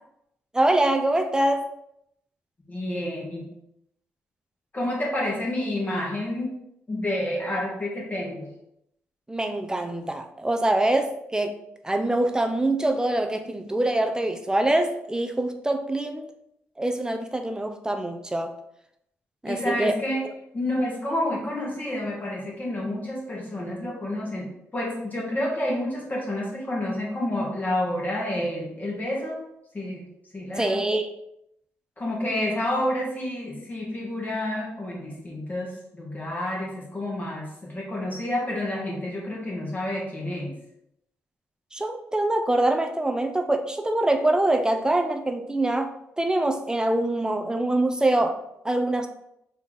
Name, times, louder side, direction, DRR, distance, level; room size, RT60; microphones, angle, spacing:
voice 1, 0.5-1.7 9.3-11.6 11.8-16.3 16.8-18.6 19.4-20.0 30.6-31.1 41.7-49.1, right 1 dB, 15° right, 7 dB, 0.6 m, -24 dB
voice 2, 2.7-3.5 4.7-6.6 6.9-8.5 19.5-20.3 20.5-29.5 29.7-30.0 30.3-30.9 32.0-40.5, left 1 dB, 30° left, -3 dB, 1.7 m, -29 dB
4.3 x 3.0 x 4.0 m, 0.78 s
supercardioid pair, 60°, 6 cm